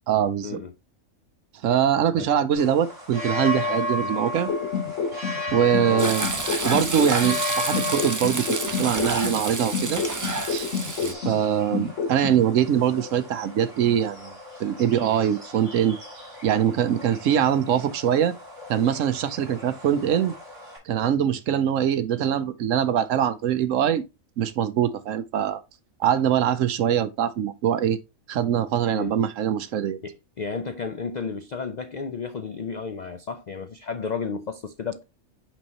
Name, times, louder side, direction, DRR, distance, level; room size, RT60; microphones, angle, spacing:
voice 1, 0.1-0.6 1.6-4.5 5.5-6.3 6.6-10.0 10.5-10.7 11.2-14.3 14.6-16.0 16.4-18.3 18.7-20.3 20.9-24.0 24.4-25.6 26.0-28.0 28.3-30.0, right 9 dB, 70° right, 1.0 m, -23 dB
sound 1, 2.5-20.8, left 2 dB, 45° right, 3.0 m, -35 dB
sound 2, 4.5-7.4 7.7-11.4 11.7-12.4, left 5 dB, 60° left, 1.2 m, -29 dB
Frying (food), 6.0-11.1, right 3 dB, 30° right, 0.3 m, -29 dB
voice 2, 30.0-35.0, left 5 dB, 85° left, 0.3 m, -33 dB
6.0 x 5.5 x 2.9 m
omnidirectional pair, 1.4 m